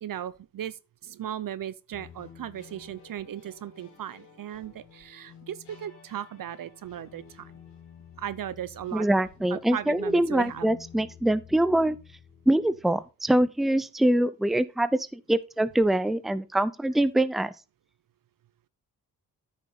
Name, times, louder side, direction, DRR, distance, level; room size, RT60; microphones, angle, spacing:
voice 1, 0.0-7.5 8.2-9.1 9.5-10.7, right 10 dB, 55° right, 0.7 m, -37 dB
sound 1, 1.9-13.0, left 7 dB, 90° left, 2.6 m, -52 dB
voice 2, 8.9-12.0 12.5-17.5, right 1 dB, ahead, 0.7 m, -24 dB
9.5 x 6.2 x 4.0 m
supercardioid pair, 45°, 40 cm